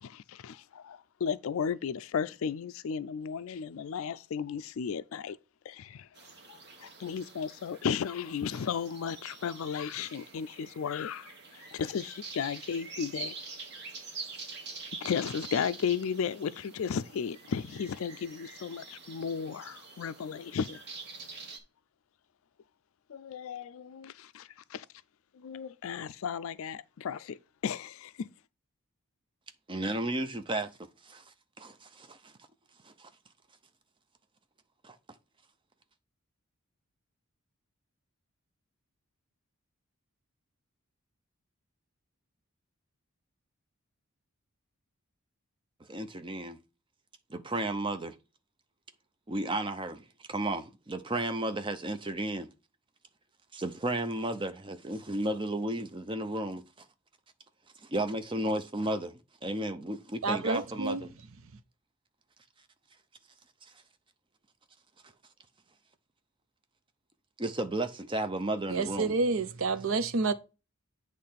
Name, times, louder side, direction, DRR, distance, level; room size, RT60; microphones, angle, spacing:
voice 1, 0.0-5.4 5.7-6.1 6.5-13.3 15.0-20.8 23.1-24.9 25.3-27.4 27.6-28.3, left 7 dB, 70° left, 0.4 m, -34 dB
sound 1, 6.1-21.6, right 4 dB, 50° right, 1.3 m, -46 dB
voice 2, 29.7-31.2 31.6-32.3 32.8-33.1 34.8-35.0 45.9-46.6 47.3-48.2 49.3-52.5 53.5-56.6 57.9-61.1 67.4-69.1, right 1 dB, 20° right, 0.6 m, -33 dB
voice 3, 60.2-61.1 68.7-70.3, right 3 dB, 65° right, 0.6 m, -29 dB
8.5 x 3.2 x 5.7 m
head